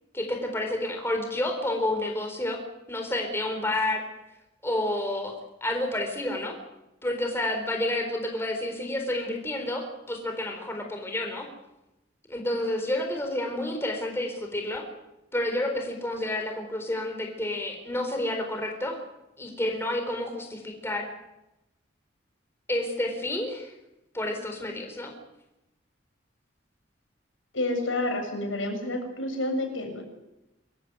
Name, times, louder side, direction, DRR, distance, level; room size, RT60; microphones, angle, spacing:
voice 1, 0.1-2.6 2.9-4.0 4.6-5.3 5.6-6.6 7.0-11.5 12.3-14.9 15.3-19.0 19.4-21.1 22.7-23.7 24.1-25.1, left 1 dB, 15° left, 3 dB, 4.1 m, -30 dB
voice 2, 27.5-30.0, left 1 dB, 90° left, 3 dB, 7.6 m, -29 dB
25.5 x 14.5 x 9.6 m, 0.94 s
head